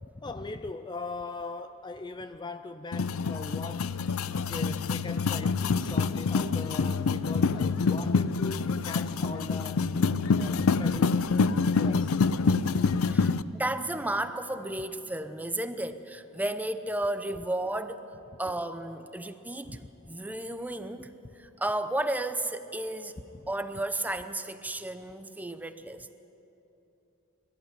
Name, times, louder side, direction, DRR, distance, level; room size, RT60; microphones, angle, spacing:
voice 1, 0.0-3.9 4.4-9.9 10.4-11.4 11.8-12.2 12.8-13.0 19.7-19.8 23.3-23.4, left 3 dB, 20° left, 10 dB, 0.4 m, -40 dB
sound 1, 2.9-13.4, left 4 dB, 85° left, 0.5 m, -26 dB
voice 2, 13.1-18.0 18.4-19.8 20.1-23.1 23.5-26.1, right 1 dB, 10° right, 9 dB, 0.8 m, -33 dB
22.0 x 14.5 x 9.7 m, 3.0 s
head